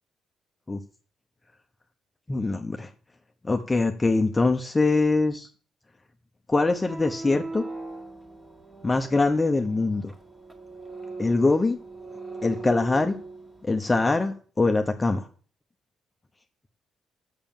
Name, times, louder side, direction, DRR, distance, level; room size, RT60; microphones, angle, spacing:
voice 1, 2.3-2.9 3.4-5.5 6.5-7.6 8.8-10.1 11.2-11.8 12.4-13.1 13.6-15.3, left 3 dB, 20° left, 5 dB, 0.9 m, -23 dB
sound 1, 6.7-13.7, right 3 dB, 15° right, 1.9 m, -40 dB
7.1 x 6.7 x 7.2 m, 0.42 s
cardioid pair, 90°, 0 cm